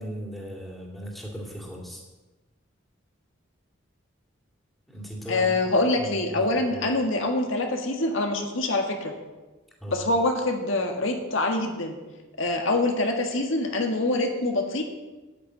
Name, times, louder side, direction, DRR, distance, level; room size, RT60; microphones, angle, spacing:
voice 1, 0.0-2.0 4.9-6.8 9.8-10.1, equal, ahead, -2 dB, 2.5 m, -38 dB
voice 2, 5.3-9.1 9.9-12.0 12.4-14.8, left 2 dB, 75° left, 3 dB, 1.7 m, -25 dB
10.0 x 9.5 x 7.7 m, 1.2 s
head